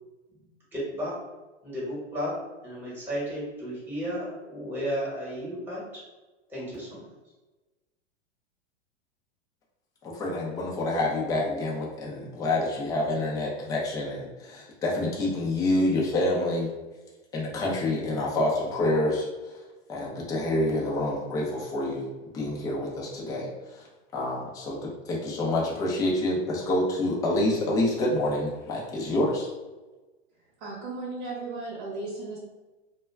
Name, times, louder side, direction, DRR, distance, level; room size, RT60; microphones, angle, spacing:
voice 1, 0.7-1.1 1.6-2.4 2.6-6.0 6.5-7.0, equal, 5° right, -7 dB, 1.0 m, -33 dB
voice 2, 10.0-16.7 17.3-19.6 19.9-22.1 22.3-23.8 24.1-29.5, left 1 dB, 10° left, -4 dB, 0.4 m, -27 dB
voice 3, 30.6-32.4, right 3 dB, 50° right, -3 dB, 0.9 m, -35 dB
2.2 x 2.2 x 3.2 m, 1.2 s
hypercardioid pair, 120°, 35 cm